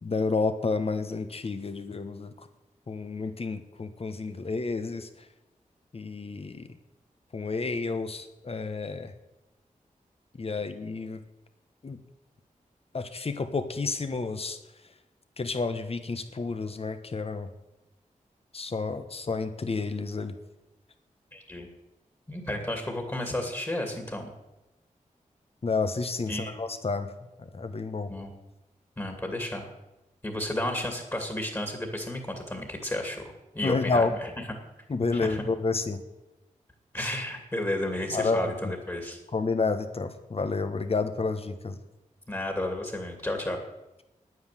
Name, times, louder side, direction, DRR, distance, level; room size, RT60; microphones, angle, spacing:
voice 1, 0.0-2.5 2.9-5.1 5.9-6.7 7.3-9.1 10.4-11.2 11.8-12.0 12.9-14.6 15.4-17.5 18.5-20.3 25.6-27.1 27.4-28.1 33.6-34.1 34.9-36.0 38.1-38.7 39.3-41.8, left 4 dB, 45° left, 9 dB, 1.4 m, -30 dB
voice 2, 21.3-21.7 22.3-24.3 26.3-26.5 28.1-28.3 29.0-29.7 30.2-33.2 33.5-34.3 35.1-35.4 36.9-39.2 42.3-43.6, left 1 dB, 20° left, 4 dB, 2.6 m, -32 dB
9.9 x 9.7 x 9.3 m, 0.99 s
wide cardioid pair, 95°, 14 cm